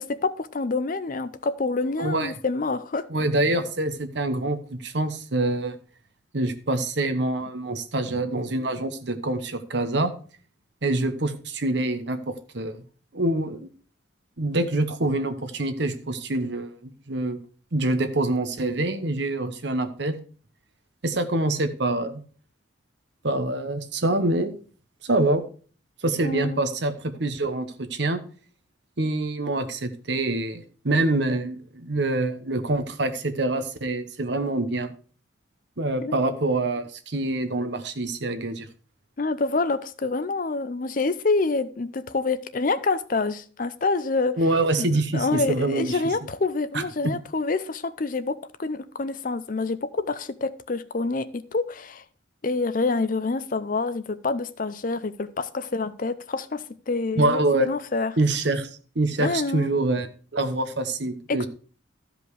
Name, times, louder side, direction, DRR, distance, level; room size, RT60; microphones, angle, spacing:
voice 1, 0.0-3.0 26.2-26.6 36.0-36.1 39.2-44.4 44.8-52.0 52.4-58.1 59.2-59.7 61.3-61.5, left 3 dB, 45° left, 0.5 m, -27 dB
voice 2, 2.0-2.3 3.1-5.8 6.3-10.1 10.8-12.8 13.1-13.7 14.4-17.4 17.7-20.2 21.0-22.2 23.2-24.5 25.0-25.4 26.0-28.2 29.0-34.9 35.8-38.7 44.4-46.0 46.7-47.1 57.2-57.7 58.2-58.7 58.9-60.1 60.3-61.5, right 2 dB, 60° right, 1.0 m, -25 dB
13.0 x 5.2 x 4.8 m
head